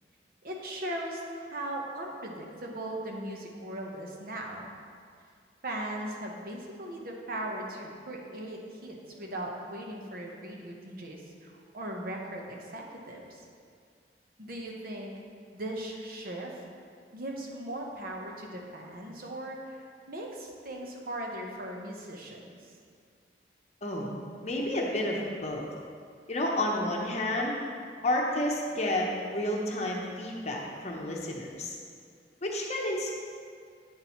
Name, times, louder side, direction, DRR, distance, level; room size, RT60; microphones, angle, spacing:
voice 1, 0.4-4.7 5.6-13.5 14.4-15.1 15.5-16.6 17.1-22.7, right 1 dB, 55° right, 0 dB, 1.0 m, -38 dB
voice 2, 24.4-25.7 26.3-27.6 28.0-31.8 32.4-33.1, left 1 dB, 40° left, -1 dB, 0.8 m, -30 dB
8.7 x 7.5 x 3.1 m, 2.2 s
head